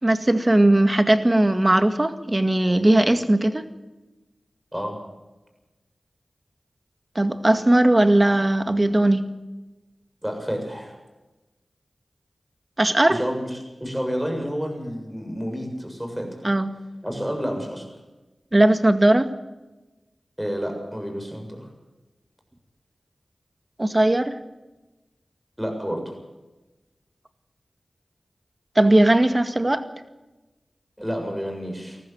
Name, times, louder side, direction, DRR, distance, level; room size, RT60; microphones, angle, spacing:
voice 1, 0.0-3.6 7.2-9.3 12.8-13.2 16.4-16.8 18.5-19.3 23.8-24.3 28.8-29.8, right 1 dB, 30° right, 9 dB, 2.0 m, -18 dB
voice 2, 10.2-11.0 13.1-16.5 17.0-17.9 20.4-21.7 25.6-26.2 31.0-32.0, equal, 10° right, 3 dB, 7.3 m, -30 dB
20.0 x 14.5 x 9.0 m, 1.1 s
cardioid pair, 45°, 0 cm